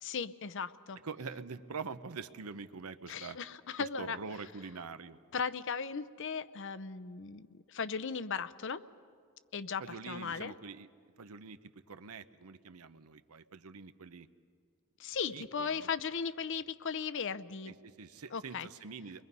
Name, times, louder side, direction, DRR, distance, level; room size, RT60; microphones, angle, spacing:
voice 1, 0.0-1.0 3.1-4.2 5.3-8.8 9.5-10.5 15.0-17.7 18.3-18.7, left 6 dB, 55° left, 14 dB, 0.6 m, -37 dB
voice 2, 1.0-3.4 3.8-5.2 9.8-10.9 11.2-14.3 15.3-15.9 17.7-19.2, right 5 dB, 85° right, 12 dB, 0.8 m, -45 dB
30.0 x 22.5 x 5.5 m, 2.1 s
head